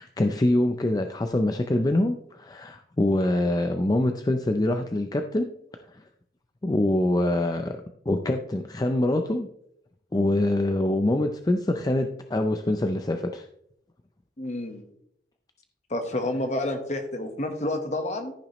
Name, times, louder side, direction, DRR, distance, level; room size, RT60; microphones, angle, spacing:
voice 1, 0.0-5.5 5.9-6.0 6.6-7.7 8.1-9.5 10.1-13.5, left 1 dB, 20° left, 6 dB, 0.4 m, -24 dB
voice 2, 14.4-14.8 15.9-18.3, left 1 dB, 40° left, 5 dB, 1.2 m, -29 dB
14.0 x 6.0 x 3.1 m, 0.74 s
head